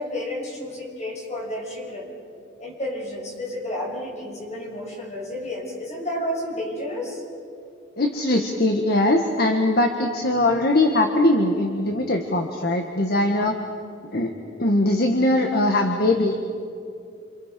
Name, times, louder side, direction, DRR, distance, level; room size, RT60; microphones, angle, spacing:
voice 1, 0.0-2.1 2.6-7.2, left 1 dB, 35° left, -1 dB, 6.4 m, -31 dB
voice 2, 8.0-13.6 14.1-14.3 14.6-16.4, left 1 dB, 55° left, 3 dB, 1.6 m, -21 dB
29.0 x 28.5 x 5.3 m, 2.5 s
head